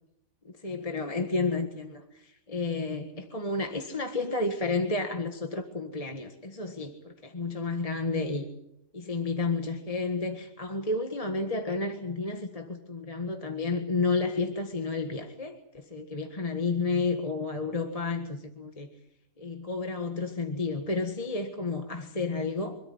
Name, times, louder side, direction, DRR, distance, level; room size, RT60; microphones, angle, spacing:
voice 1, 0.6-8.5 8.9-18.9 19.4-22.8, left 3 dB, 25° left, 4 dB, 1.7 m, -31 dB
26.0 x 13.5 x 9.6 m, 0.81 s
omnidirectional pair, 1.5 m